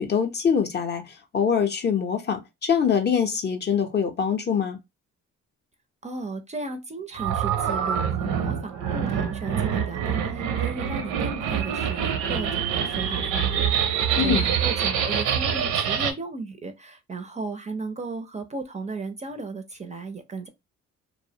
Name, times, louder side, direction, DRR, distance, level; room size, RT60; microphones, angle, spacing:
voice 1, 0.0-4.8 14.1-14.4, left 7 dB, 35° left, 0.5 m, -24 dB
voice 2, 6.0-20.5, right 3 dB, 25° right, 0.4 m, -35 dB
sound 1, 7.1-16.1, right 8 dB, 85° right, 0.6 m, -25 dB
2.4 x 2.0 x 2.6 m
cardioid pair, 90°, 30 cm